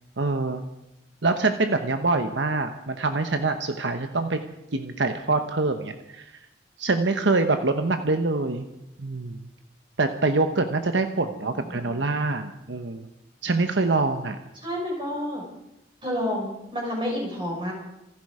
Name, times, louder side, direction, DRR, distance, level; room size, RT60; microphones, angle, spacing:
voice 1, 0.2-0.6 1.2-4.4 4.7-6.3 6.8-8.7 9.0-9.4 10.0-13.1 13.4-14.4, right 3 dB, 70° right, 7 dB, 1.0 m, -25 dB
voice 2, 11.4-12.0 14.6-15.5 16.0-17.7, equal, 25° right, -1 dB, 6.0 m, -30 dB
27.0 x 11.0 x 4.9 m, 0.88 s
head